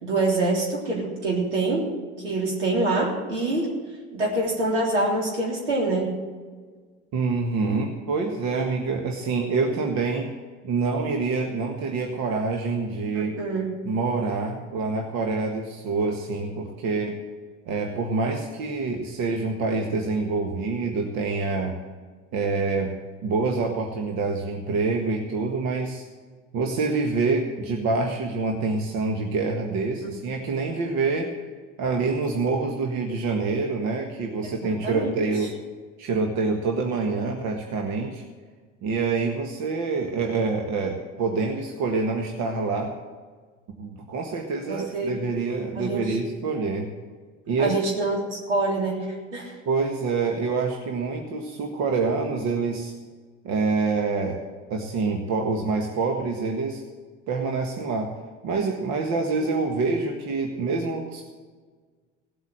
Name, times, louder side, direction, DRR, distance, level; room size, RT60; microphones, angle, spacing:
voice 1, 0.0-1.9 2.2-3.7 4.1-6.1 13.1-13.8 30.0-30.2 30.7-30.8 34.4-35.1 44.7-45.2 45.7-46.2 47.6-49.6, right 2 dB, 75° right, -2 dB, 3.6 m, -26 dB
voice 2, 7.1-10.3 10.6-13.3 13.8-17.1 17.6-21.8 22.3-23.0 23.2-26.0 26.5-31.3 31.8-35.5 36.0-38.2 38.8-42.9 43.8-46.9 47.5-47.7 49.6-52.9 53.4-54.4 54.7-56.8 57.3-58.1 58.4-61.2, right 4 dB, 50° right, 2 dB, 1.6 m, -26 dB
17.5 x 8.1 x 7.7 m, 1.5 s
figure-of-eight pair, 65°, 36 cm